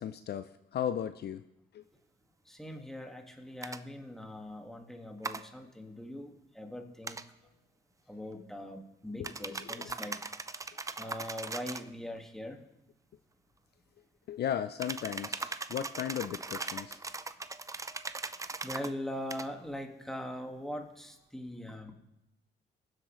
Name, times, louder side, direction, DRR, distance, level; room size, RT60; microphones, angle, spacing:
voice 1, 0.0-1.4 1.7-1.8 9.2-9.9 14.3-17.0, left 9 dB, 55° left, 11 dB, 0.5 m, -36 dB
voice 2, 2.5-7.2 8.1-10.3 11.0-12.6 18.6-21.9, left 1 dB, ahead, 3 dB, 1.8 m, -41 dB
sound 1, 3.6-3.8 5.2-5.4 7.0-7.3 9.2-11.9 14.8-18.9 19.3-19.5, right 3 dB, 15° right, 0.5 m, -39 dB
22.0 x 7.8 x 3.1 m, 0.91 s
cardioid pair, 90°, 20 cm